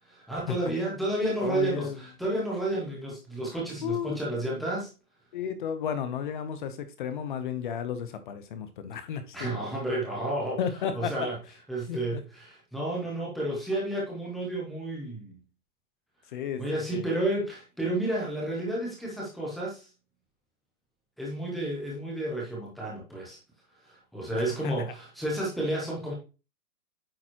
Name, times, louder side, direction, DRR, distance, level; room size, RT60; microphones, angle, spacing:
voice 1, 0.1-4.9 9.3-10.6 10.9-11.4 11.7-15.4 16.6-19.9 21.2-23.4 23.9-26.1, right 1 dB, ahead, 0.6 m, -31 dB
voice 2, 1.4-2.0 3.8-4.5 5.3-9.5 10.6-11.1 11.9-12.2 16.3-16.6 16.9-17.1 24.6-24.8, left 8 dB, 35° left, 0.8 m, -33 dB
8.8 x 4.1 x 2.9 m
hypercardioid pair, 155°, 46 cm